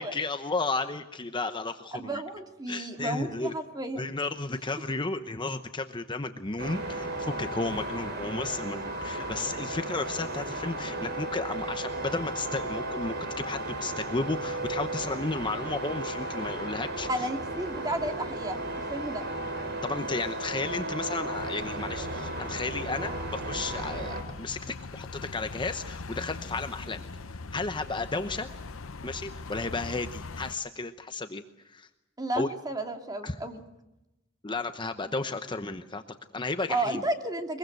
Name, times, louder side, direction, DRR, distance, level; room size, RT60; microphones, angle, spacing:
voice 1, 0.0-2.2 2.7-3.5 4.0-17.3 19.8-27.0 27.5-28.5 29.0-31.4 31.7-31.9 32.4-32.5 33.2-33.4 34.4-37.0, left 3 dB, 25° left, 8 dB, 0.9 m, -33 dB
voice 2, 1.9-4.0 17.1-19.3 32.2-33.6 36.7-37.6, right 1 dB, 20° right, 4 dB, 2.4 m, -32 dB
sound 1, 6.6-24.2, right 2 dB, 55° right, 4.2 m, -35 dB
sound 2, 21.4-30.5, left 3 dB, 85° left, 0.8 m, -41 dB
22.5 x 22.5 x 7.9 m, 0.95 s
head